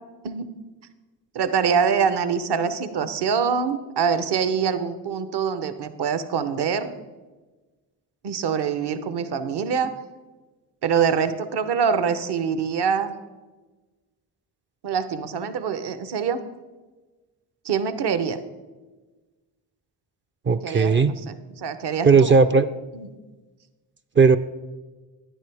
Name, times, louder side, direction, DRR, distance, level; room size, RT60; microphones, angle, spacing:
voice 1, 1.3-6.9 8.2-9.9 10.8-13.2 14.8-16.4 17.6-18.4 20.6-21.0 21.6-22.3 22.9-23.1, right 6 dB, 60° right, 12 dB, 0.9 m, -24 dB
voice 2, 20.5-21.2 22.0-22.7 24.2-24.4, right 5 dB, 25° right, 9 dB, 0.4 m, -16 dB
10.5 x 9.8 x 3.4 m, 1.2 s
supercardioid pair, 50°, 46 cm